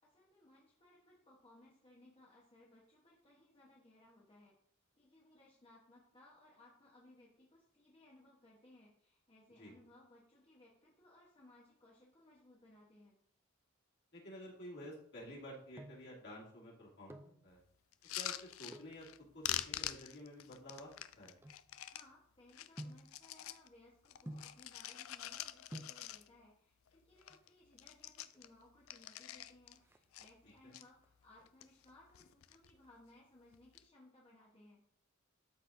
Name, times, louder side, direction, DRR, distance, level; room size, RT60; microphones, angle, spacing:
voice 1, 0.0-4.5 4.9-13.2 21.9-34.8, left 1 dB, 30° left, -3 dB, 1.1 m, -64 dB
voice 2, 14.1-17.6 18.2-19.1 19.3-20.9 21.2-21.4 30.6-30.7, equal, 60° left, -4 dB, 2.5 m, -51 dB
sound 1, 15.7-16.2 16.9-17.4 18.7-19.0 19.8-22.2 22.8-23.2 24.3-24.7 25.4-25.5 25.7-26.1 27.2-27.7 28.0-28.1 28.3-28.5 28.9-29.3 29.6-30.6 31.0-31.5 31.8-33.0 33.3-33.4, right 1 dB, 10° right, 0.4 m, -52 dB
sound 2, 17.9-19.2 19.4-22.1 22.5-23.7 24.0-26.5 26.9-27.0 27.2-27.5 27.7-29.8 30.1-30.8 31.4-31.9 32.1-32.7 33.5-33.8, left 13 dB, 85° left, 0.4 m, -45 dB
12.0 x 4.2 x 2.6 m, 0.66 s
head